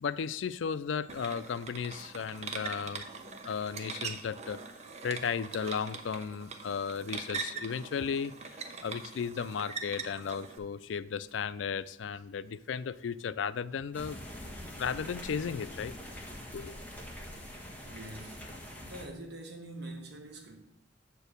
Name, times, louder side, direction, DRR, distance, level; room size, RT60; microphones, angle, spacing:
voice 1, 0.0-3.0 3.4-4.6 5.0-14.2 14.8-16.0 16.5-16.8, left 6 dB, 90° left, 0.4 m, -35 dB
sound 1, 1.1-10.6, right 4 dB, 35° right, 0.8 m, -42 dB
sound 2, 13.9-19.1, left 1 dB, 10° left, 1.4 m, -44 dB
voice 2, 17.8-18.5 18.8-20.6, right 1 dB, 65° right, 1.7 m, -45 dB
7.9 x 4.6 x 6.7 m
head